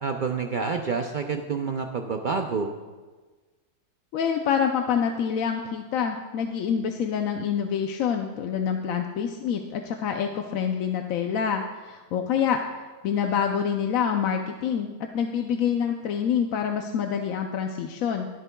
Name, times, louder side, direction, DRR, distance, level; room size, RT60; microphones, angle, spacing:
voice 1, 0.0-2.7, right 5 dB, 80° right, 4 dB, 0.4 m, -28 dB
voice 2, 4.1-18.3, left 7 dB, 70° left, 4 dB, 1.0 m, -26 dB
21.0 x 8.2 x 2.3 m, 1.3 s
omnidirectional pair, 1.6 m